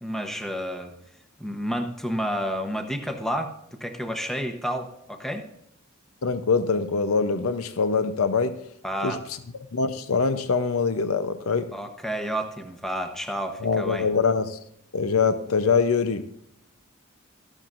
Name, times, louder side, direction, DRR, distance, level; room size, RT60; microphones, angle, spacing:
voice 1, 0.0-0.9 1.4-5.5 8.8-9.2 11.7-14.1, equal, ahead, 5 dB, 0.8 m, -30 dB
voice 2, 6.2-8.6 9.0-9.4 9.7-11.7 13.6-14.6 14.9-16.3, left 5 dB, 75° left, 11 dB, 0.6 m, -24 dB
14.0 x 11.5 x 2.5 m, 0.76 s
head